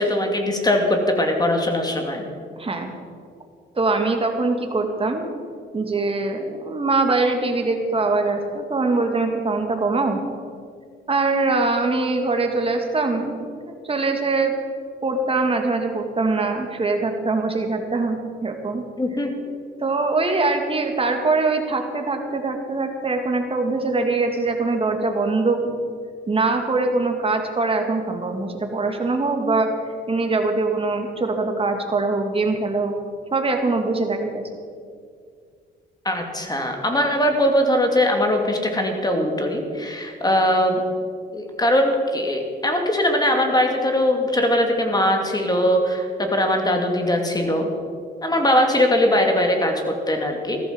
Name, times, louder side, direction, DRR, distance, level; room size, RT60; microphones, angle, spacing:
voice 1, 0.0-2.2 19.0-19.3 36.0-40.8 41.3-47.7 48.2-50.6, left 1 dB, 20° left, 3 dB, 2.5 m, -21 dB
voice 2, 2.6-2.9 3.8-5.3 5.7-10.2 11.1-13.5 13.8-14.6 15.0-18.8 19.8-25.7 26.3-29.7 30.1-32.9 33.3-34.4, right 3 dB, 30° right, 4 dB, 2.2 m, -22 dB
15.0 x 13.5 x 5.3 m, 2.2 s
cardioid pair, 90°, 20 cm